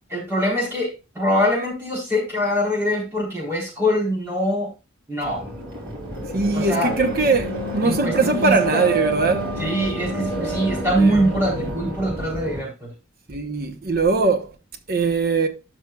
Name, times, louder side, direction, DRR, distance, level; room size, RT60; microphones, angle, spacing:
voice 1, 0.1-4.7 5.1-5.4 6.5-6.9 7.8-8.8 9.6-12.9, equal, 10° right, 3.8 m, -23 dB
sound 1, 5.2-12.6, right 1 dB, 75° right, 5.0 m, -28 dB
voice 2, 6.3-9.5 11.0-11.2 11.5-11.7 13.3-14.5 14.9-15.5, right 3 dB, 45° right, 1.0 m, -21 dB
12.5 x 5.6 x 2.4 m
head